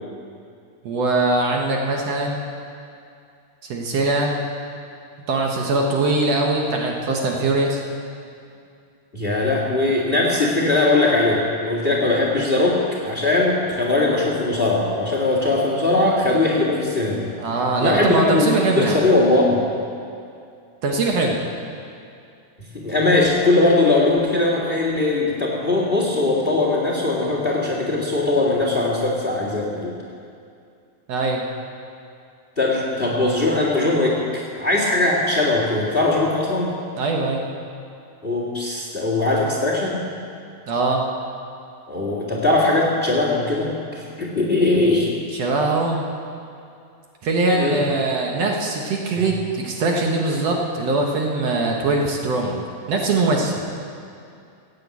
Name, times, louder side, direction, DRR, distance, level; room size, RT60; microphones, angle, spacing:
voice 1, 0.8-2.4 3.6-4.4 5.3-7.8 17.4-19.0 20.8-21.4 31.1-31.4 37.0-37.5 40.7-41.0 45.3-46.1 47.2-52.6 52.9-53.6, right 2 dB, 60° right, 0 dB, 2.2 m, -21 dB
voice 2, 9.1-17.4 17.8-19.7 22.7-29.9 32.6-36.7 38.2-40.0 41.9-45.1 47.6-47.8 49.2-49.3, left 2 dB, 20° left, -2 dB, 1.8 m, -20 dB
15.5 x 9.1 x 8.3 m, 2.5 s
omnidirectional pair, 3.4 m